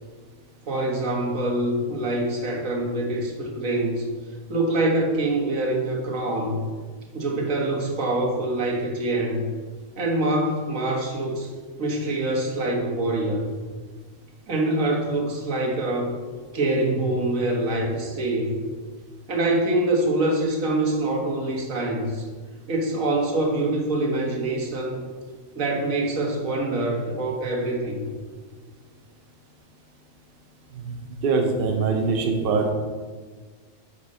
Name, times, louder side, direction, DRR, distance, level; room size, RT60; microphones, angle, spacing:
voice 1, 0.7-4.1 4.5-6.7 7.1-9.5 10.0-11.5 11.8-13.5 14.5-16.1 16.5-18.5 19.3-22.3 22.7-25.0 25.6-28.1, right 2 dB, 75° right, 0 dB, 1.8 m, -25 dB
voice 2, 31.2-32.7, right 4 dB, 50° right, 3 dB, 0.9 m, -22 dB
8.2 x 4.6 x 5.4 m, 1.5 s
omnidirectional pair, 1.4 m